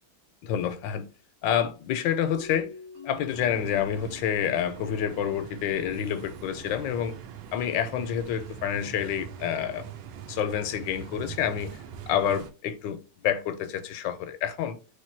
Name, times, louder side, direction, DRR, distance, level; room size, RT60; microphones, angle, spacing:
voice 1, 0.4-1.1 1.4-2.7 3.0-7.2 7.5-9.9 10.3-11.8 12.1-14.8, left 9 dB, 80° left, 1.3 m, -28 dB
sound 1, 2.2-6.9, left 4 dB, 40° right, 1.2 m, -47 dB
sound 2, 3.3-12.5, right 8 dB, 75° right, 1.2 m, -43 dB
3.3 x 3.2 x 4.4 m
omnidirectional pair, 2.0 m